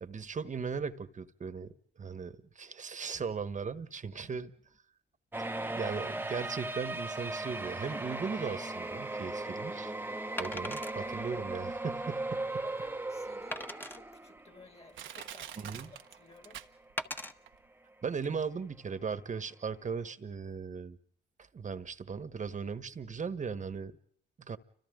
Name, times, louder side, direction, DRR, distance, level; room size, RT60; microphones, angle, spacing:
voice 1, 0.0-4.5 5.4-9.9 10.4-12.6 15.6-15.9 18.0-21.0 21.5-23.9 24.4-24.6, right 5 dB, 40° right, 1.5 m, -38 dB
voice 2, 4.1-4.4 9.1-9.7 12.6-16.6, left 3 dB, 30° left, 2.5 m, -56 dB
sound 1, 5.3-14.6 14.9-15.0 15.9-16.0 16.4-16.5, right 2 dB, 10° right, 1.1 m, -37 dB
Wood, 8.8-8.9 10.4-11.0 11.6-11.7 12.2-12.3 13.5-14.0 14.8-15.6 17.0-17.3 18.1-18.3, left 1 dB, 10° left, 1.3 m, -40 dB
Crushing, 12.9-13.0 13.6-13.7 14.4-14.5 14.9-17.1 17.5-17.6, right 10 dB, 75° right, 1.3 m, -45 dB
30.0 x 25.5 x 3.9 m
cardioid pair, 90°, 20 cm